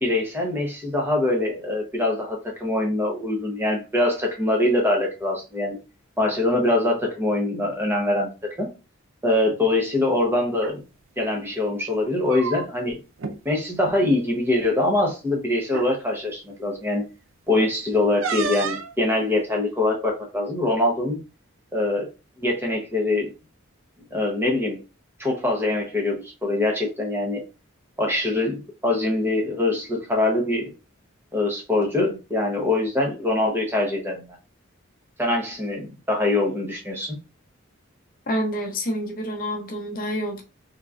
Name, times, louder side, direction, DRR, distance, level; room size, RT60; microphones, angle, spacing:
voice 1, 0.0-5.8 6.2-8.3 8.6-8.7 9.2-10.8 11.2-13.0 13.4-17.0 17.5-21.2 21.7-22.1 22.4-23.3 24.1-24.8 25.2-27.4 28.0-30.7 31.3-34.2 35.2-37.2, left 2 dB, 10° right, 0.9 m, -23 dB
sound 1, 10.5-10.8 12.0-12.9 13.2-13.4 13.7-14.0 14.9-15.0 15.7-15.9 18.2-18.9, right 5 dB, 70° right, 0.5 m, -30 dB
voice 2, 38.3-40.4, equal, 45° left, 0.8 m, -28 dB
3.6 x 3.0 x 2.5 m
head